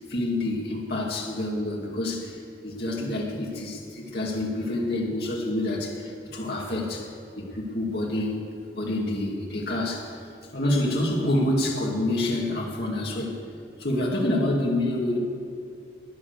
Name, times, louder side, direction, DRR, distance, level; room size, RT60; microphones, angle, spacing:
voice 1, 0.0-8.4 8.8-10.2 10.5-13.4 13.8-15.2, left 1 dB, 55° left, -2 dB, 2.2 m, -27 dB
14.0 x 10.0 x 6.7 m, 2.4 s
head